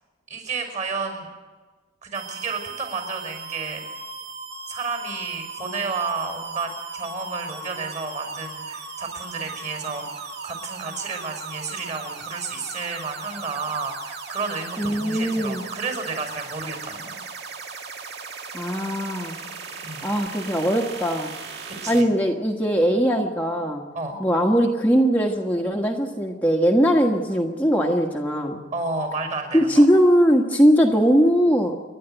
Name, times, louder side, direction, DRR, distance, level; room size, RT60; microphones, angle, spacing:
voice 1, 0.3-1.3 2.0-3.8 4.7-17.2 19.8-20.1 21.7-22.1 23.9-24.2 28.7-29.9, right 4 dB, 35° right, 4 dB, 5.8 m, -31 dB
sound 1, 2.1-22.0, right 4 dB, 55° right, 2.0 m, -37 dB
voice 2, 14.8-15.6 18.5-19.4 20.0-21.3 21.9-23.8 24.2-28.6 29.5-31.7, equal, 10° left, -1 dB, 1.4 m, -20 dB
29.5 x 12.0 x 9.1 m, 1.4 s
head